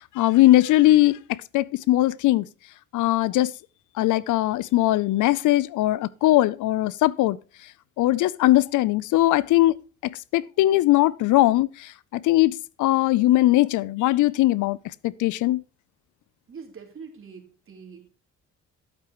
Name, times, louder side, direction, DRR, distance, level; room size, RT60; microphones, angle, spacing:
voice 1, 0.2-2.4 2.9-3.5 4.0-7.4 8.0-9.7 10.3-11.7 12.2-14.8 15.0-15.6, left 16 dB, 80° left, 0.6 m, -20 dB
voice 2, 16.5-18.1, right 5 dB, 45° right, 3.6 m, -43 dB
11.5 x 8.9 x 3.0 m
cardioid pair, 90°, 30 cm